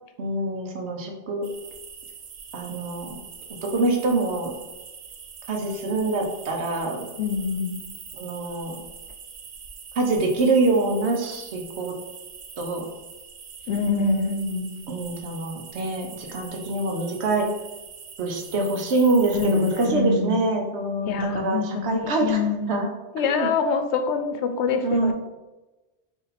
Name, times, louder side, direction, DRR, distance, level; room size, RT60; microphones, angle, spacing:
voice 1, 0.2-1.5 2.5-3.2 3.6-4.5 5.5-7.0 8.1-8.8 10.0-11.9 12.6-12.9 14.9-17.5 18.2-22.4 22.7-22.9 23.3-23.5 24.8-25.1, right 2 dB, 75° right, 2 dB, 1.0 m, -25 dB
sound 1, 1.4-19.9, right 6 dB, 60° right, 0.5 m, -43 dB
voice 2, 7.2-7.8 13.7-14.7 19.3-20.4 21.1-22.8 23.1-25.1, left 4 dB, 80° left, 6 dB, 0.9 m, -25 dB
4.1 x 2.9 x 4.0 m, 1.1 s
omnidirectional pair, 1.1 m